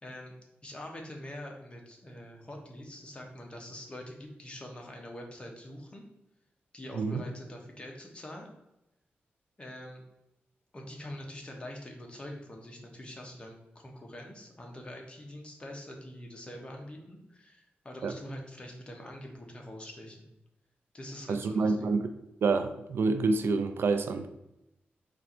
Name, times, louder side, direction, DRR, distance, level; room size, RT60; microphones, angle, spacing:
voice 1, 0.0-0.3 0.6-6.1 6.7-8.5 9.6-10.0 10.7-20.3 20.9-21.9, left 1 dB, 25° left, 1 dB, 0.9 m, -44 dB
voice 2, 21.3-22.1 22.4-24.3, right 4 dB, 70° right, 8 dB, 0.4 m, -27 dB
4.4 x 2.6 x 4.2 m, 0.88 s
wide cardioid pair, 110°, 4 cm